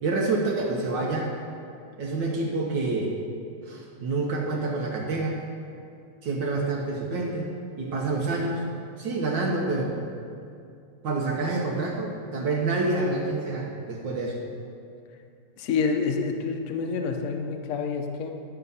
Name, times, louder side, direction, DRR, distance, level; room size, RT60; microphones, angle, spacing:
voice 1, 0.0-1.4 2.0-3.1 3.7-5.4 6.2-7.5 7.8-8.6 9.0-9.9 11.0-14.4, right 3 dB, 65° right, -1 dB, 1.6 m, -27 dB
voice 2, 15.6-18.3, left 5 dB, 60° left, 4 dB, 0.9 m, -28 dB
11.0 x 5.8 x 5.4 m, 2.4 s
omnidirectional pair, 2.2 m